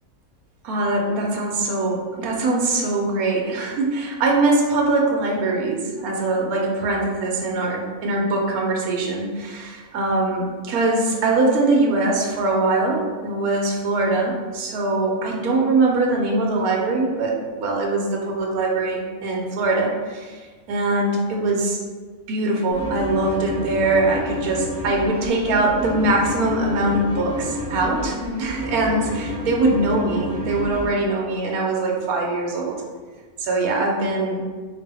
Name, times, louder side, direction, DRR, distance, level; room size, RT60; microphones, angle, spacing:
voice 1, 0.6-21.8 22.3-32.8 33.4-34.4, right 2 dB, 75° right, -1 dB, 1.1 m, -22 dB
sound 1, 22.7-30.9, left 1 dB, 80° left, 1.6 m, -30 dB
4.2 x 2.2 x 3.3 m, 1.4 s
omnidirectional pair, 1.6 m